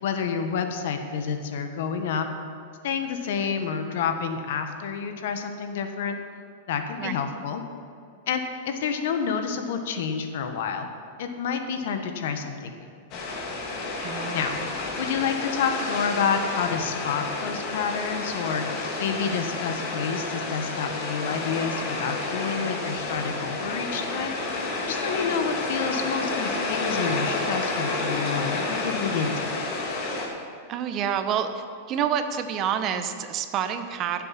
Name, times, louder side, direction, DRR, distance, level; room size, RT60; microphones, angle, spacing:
voice 1, 0.0-2.3 2.8-6.2 6.7-7.6 8.3-10.9 11.2-12.9 14.3-14.6 15.0-18.6 19.0-24.3 24.8-29.6, left 6 dB, 70° left, 6 dB, 1.3 m, -29 dB
sound 1, 13.1-30.3, left 2 dB, 45° left, 2.4 m, -30 dB
voice 2, 14.0-14.7 22.6-22.9 30.7-31.5 31.9-34.2, right 8 dB, 35° right, 9 dB, 0.9 m, -28 dB
15.5 x 7.7 x 5.9 m, 2.5 s
supercardioid pair, 140°, 0 cm